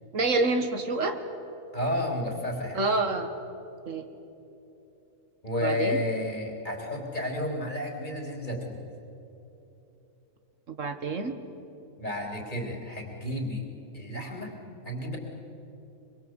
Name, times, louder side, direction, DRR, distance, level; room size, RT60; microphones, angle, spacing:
voice 1, 0.1-1.2 2.7-3.3 3.9-4.1 5.6-6.0 10.7-11.3, right 3 dB, 75° right, 7 dB, 1.9 m, -27 dB
voice 2, 1.7-2.8 5.4-8.8 12.0-13.7 13.9-14.5 14.8-15.2, left 1 dB, 35° left, 1 dB, 3.8 m, -31 dB
25.0 x 23.5 x 8.0 m, 3.0 s
omnidirectional pair, 1.4 m